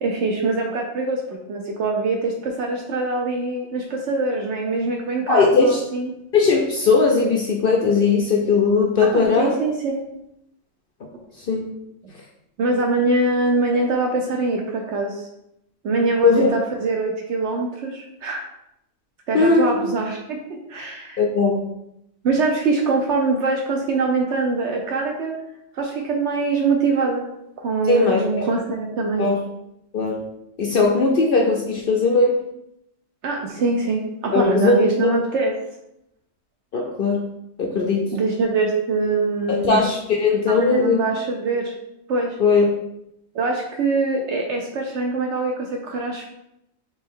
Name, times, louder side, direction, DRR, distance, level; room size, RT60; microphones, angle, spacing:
voice 1, 0.0-6.1 9.0-10.0 12.6-15.3 15.8-18.4 19.3-21.2 22.2-25.3 25.7-27.2 27.6-29.2 33.2-35.5 38.1-39.8 40.5-41.7 42.1-42.4 43.3-46.2, right 3 dB, 65° right, 1 dB, 0.8 m, -23 dB
voice 2, 5.3-5.8 6.3-9.5 11.5-11.7 16.2-16.5 19.3-19.7 21.2-21.7 27.9-28.5 29.2-29.4 29.9-30.2 30.6-32.4 34.3-35.1 36.7-37.3 37.6-38.1 39.5-41.0 42.4-42.6, left 4 dB, 60° left, 1 dB, 0.6 m, -18 dB
4.4 x 2.9 x 3.7 m, 0.82 s
omnidirectional pair, 1.4 m